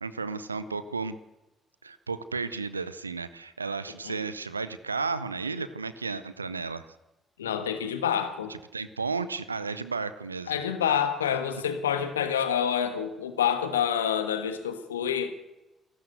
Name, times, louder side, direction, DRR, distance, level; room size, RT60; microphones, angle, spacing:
voice 1, 0.0-1.2 1.8-6.9 8.5-10.6, right 4 dB, 85° right, 15 dB, 0.6 m, -33 dB
voice 2, 7.4-8.5 10.5-15.3, left 8 dB, 80° left, 9 dB, 1.4 m, -27 dB
28.5 x 13.0 x 8.0 m, 1.0 s
figure-of-eight pair, 45°, 0 cm